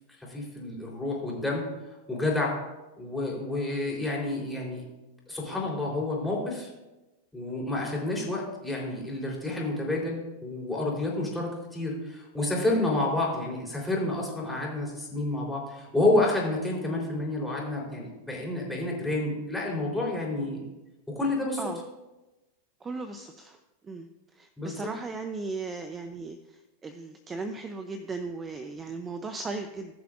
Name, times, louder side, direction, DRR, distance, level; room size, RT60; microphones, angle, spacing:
voice 1, 0.2-1.6 2.1-2.6 3.0-4.8 5.3-6.7 7.3-20.6 21.1-21.6 24.6-24.7, left 2 dB, 5° left, -4 dB, 3.9 m, -29 dB
voice 2, 22.8-23.6 23.8-29.9, right 3 dB, 20° right, 8 dB, 0.6 m, -37 dB
19.0 x 6.8 x 2.6 m, 1.1 s
hypercardioid pair, 110°, 0 cm